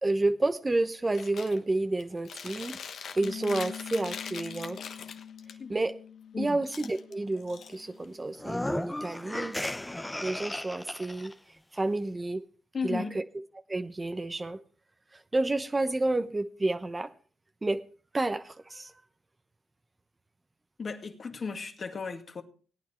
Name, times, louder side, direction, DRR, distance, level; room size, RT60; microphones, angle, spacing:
voice 1, 0.0-4.8 5.7-6.0 6.4-9.6 10.2-11.3 11.7-12.4 12.8-13.2 13.7-14.6 15.1-17.1 17.6-17.8 18.1-18.9, right 2 dB, 20° right, 0.9 m, -30 dB
Chewing mastication, 1.1-1.6 2.0-5.5 6.6-8.1, left 7 dB, 60° left, 1.3 m, -42 dB
Bass guitar, 3.2-9.5, left 8 dB, 85° left, 1.1 m, -46 dB
sound 1, 8.3-11.3, left 1 dB, 10° left, 0.6 m, -35 dB
voice 2, 12.7-13.2 20.8-22.4, left 5 dB, 40° left, 2.1 m, -35 dB
17.0 x 9.2 x 4.4 m
cardioid pair, 90°, 0 cm